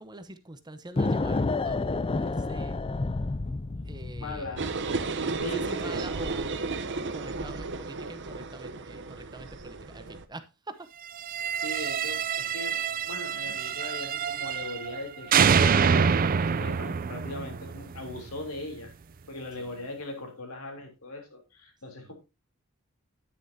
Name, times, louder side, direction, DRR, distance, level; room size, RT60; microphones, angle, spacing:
voice 1, 0.0-2.8 3.8-4.6 4.8-4.9 5.3-6.7 6.9-10.9 19.6-19.9 22.0-22.1, right 2 dB, 20° right, 0.9 m, -45 dB
sound 1, 1.0-4.7, left 3 dB, 25° left, 0.5 m, -29 dB
voice 2, 4.2-4.7 5.1-6.0 11.5-12.8 13.0-18.9 19.3-22.1, left 2 dB, 85° left, 3.3 m, -40 dB
sound 2, 4.6-10.3, right 3 dB, 55° right, 0.8 m, -33 dB
sound 3, 11.2-15.0 15.3-18.3, right 6 dB, 40° right, 0.4 m, -26 dB
9.8 x 9.7 x 2.8 m
head